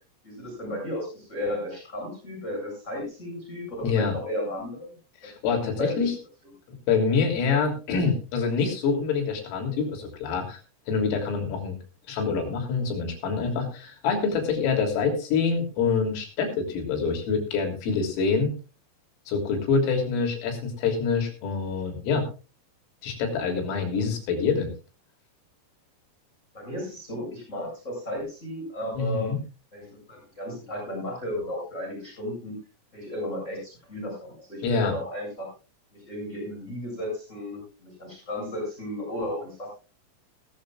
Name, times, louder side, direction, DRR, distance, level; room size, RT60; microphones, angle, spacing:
voice 1, 0.2-5.0 5.5-6.0 26.5-29.3 29.7-32.6 32.9-35.5 35.9-39.7, left 1 dB, 15° left, -1 dB, 8.1 m, -34 dB
voice 2, 3.8-4.1 5.2-6.2 6.9-10.6 10.9-11.8 12.1-18.6 19.3-22.3 23.0-24.7 29.0-29.4 34.6-34.9, left 5 dB, 75° left, 3 dB, 5.8 m, -26 dB
19.0 x 14.0 x 2.5 m, 0.32 s
omnidirectional pair, 6.0 m